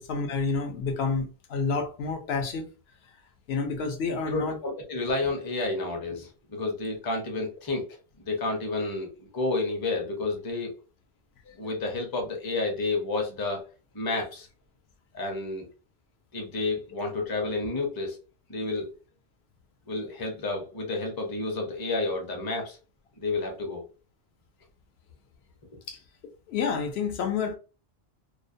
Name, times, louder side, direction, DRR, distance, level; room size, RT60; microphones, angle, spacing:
voice 1, 0.0-2.7 3.5-4.6 11.5-11.7 25.9-26.0 26.5-27.6, left 4 dB, 80° left, 0.8 m, -29 dB
voice 2, 4.3-7.9 8.2-10.7 11.6-13.7 13.9-14.5 15.1-15.7 16.3-18.2 18.5-18.9 19.9-22.8 23.2-23.8, left 3 dB, 25° left, 0.5 m, -30 dB
2.4 x 2.1 x 2.5 m
omnidirectional pair, 1.1 m